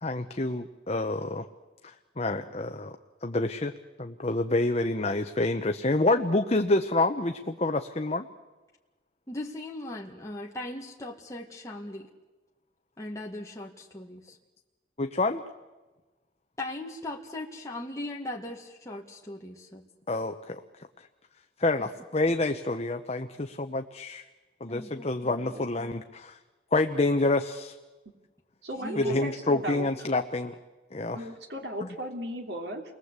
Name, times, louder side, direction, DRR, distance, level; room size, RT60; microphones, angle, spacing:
voice 1, 0.0-1.4 1.8-2.9 3.2-3.7 4.0-8.3 15.0-15.4 20.1-20.6 21.6-24.2 24.6-26.4 26.7-27.7 29.0-30.5 30.9-31.2 31.8-31.9, left 2 dB, 35° left, 6 dB, 0.9 m, -28 dB
voice 2, 9.3-12.1 13.0-14.4 16.6-19.8 21.8-21.9 24.7-25.5 28.8-29.2, left 1 dB, 20° left, -1 dB, 2.0 m, -39 dB
voice 3, 28.6-29.9 31.1-32.8, right 1 dB, 75° right, 4 dB, 3.1 m, -35 dB
29.0 x 21.0 x 8.2 m, 1.2 s
head